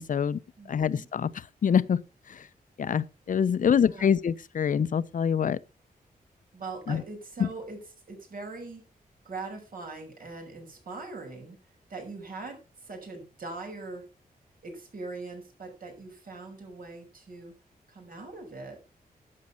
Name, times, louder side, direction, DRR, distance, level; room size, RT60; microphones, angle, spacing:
voice 1, 0.0-0.4 0.7-2.0 2.3-2.4 2.8-5.6 6.9-7.0 7.4-7.5, left 7 dB, 55° left, 0.6 m, -25 dB
voice 2, 0.6-1.1 3.6-4.2 6.5-8.8 9.2-11.6 11.9-14.0 14.6-17.5 17.9-18.9, right 3 dB, 65° right, 6.1 m, -41 dB
11.5 x 8.7 x 5.6 m
wide cardioid pair, 125°, 16 cm